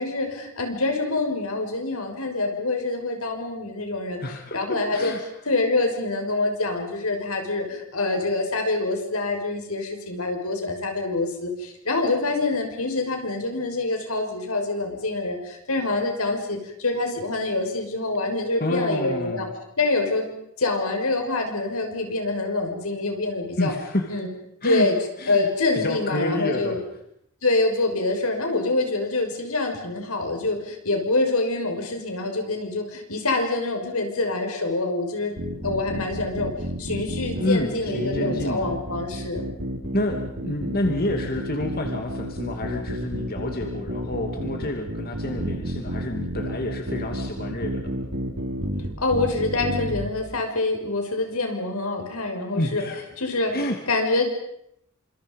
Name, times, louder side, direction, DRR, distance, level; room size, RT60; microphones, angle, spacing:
voice 1, 0.0-4.2 4.5-5.1 5.4-19.5 19.8-20.3 20.6-23.7 24.1-24.3 24.6-25.0 25.3-26.8 27.4-35.3 35.6-36.5 36.8-39.5 49.0-52.8 53.2-53.6 53.9-54.3, left 2 dB, 85° left, 4 dB, 6.2 m, -26 dB
voice 2, 4.2-5.2 18.6-19.5 23.6-24.1 24.6-24.9 25.2-25.5 25.7-26.8 37.4-38.7 39.9-47.9 52.6-53.0 53.5-53.8, left 1 dB, 45° left, 3 dB, 2.7 m, -28 dB
sound 1, 35.4-50.1, equal, 65° right, 5.1 m, -31 dB
28.5 x 27.0 x 5.5 m, 0.74 s
head